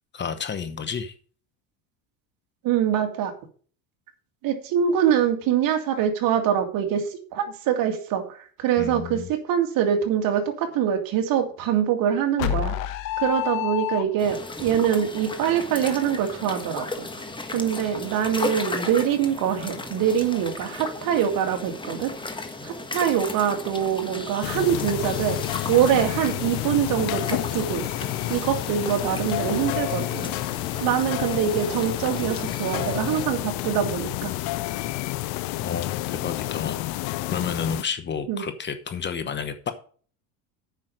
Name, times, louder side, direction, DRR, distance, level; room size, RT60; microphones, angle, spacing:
voice 1, 0.1-1.1 8.8-9.3 35.6-36.8 37.3-39.7, left 6 dB, 25° left, 1.0 m, -31 dB
voice 2, 2.6-3.3 4.4-7.0 7.3-12.7 13.2-17.1 17.5-22.1 22.6-25.4 25.7-27.2 27.5-30.3 30.8-34.3 38.3-38.4, right 9 dB, 55° right, 2.3 m, -24 dB
sound 1, 12.4-14.5, left 12 dB, 90° left, 1.2 m, -27 dB
sound 2, 14.2-33.3, left 2 dB, 10° left, 1.3 m, -36 dB
sound 3, 24.4-37.8, left 17 dB, 65° left, 0.7 m, -29 dB
9.0 x 5.9 x 6.4 m
supercardioid pair, 120°, 39 cm